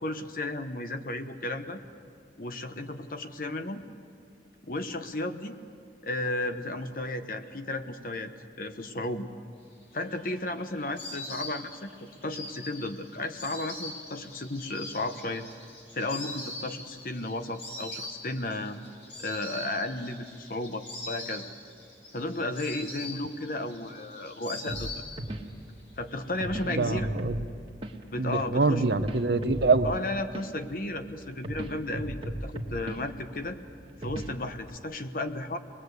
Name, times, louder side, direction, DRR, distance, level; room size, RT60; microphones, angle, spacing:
voice 1, 0.0-1.8 2.4-3.8 4.6-5.6 6.0-8.3 8.6-9.3 9.9-15.5 15.9-18.8 19.2-21.5 22.1-24.9 26.0-27.1 28.1-28.8 29.8-33.6 34.0-35.6, left 2 dB, 50° left, 8 dB, 1.1 m, -34 dB
Insect, 9.8-25.5 25.8-26.6, left 2 dB, 85° left, 5.3 m, -43 dB
sound 1, 24.7-34.8, right 1 dB, 30° right, 1.5 m, -39 dB
voice 2, 26.7-27.4 28.2-29.9, right 3 dB, 65° right, 10 dB, 0.8 m, -25 dB
25.0 x 19.5 x 8.1 m, 2.3 s
head